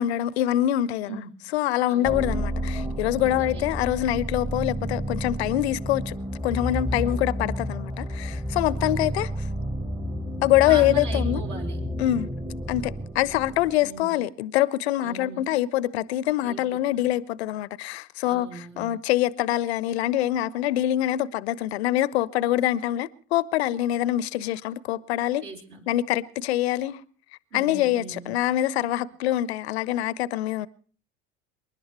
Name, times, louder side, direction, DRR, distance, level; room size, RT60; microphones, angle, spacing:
voice 1, 0.0-1.2 1.5-6.1 6.4-9.3 10.4-11.4 12.0-12.3 12.7-25.4 25.9-27.0 27.5-30.7, left 13 dB, 65° left, 0.7 m, -25 dB
voice 2, 1.9-2.2 3.1-3.7 6.9-7.3 8.8-9.2 10.6-11.8 13.8-14.2 15.0-15.5 16.4-16.6 16.9-17.1 18.2-19.0 25.4-25.9 27.5-28.3, right 4 dB, 55° right, 4.0 m, -39 dB
sound 1, 2.0-13.9, equal, 10° right, 1.3 m, -31 dB
27.0 x 11.5 x 4.5 m
figure-of-eight pair, 65°, 35 cm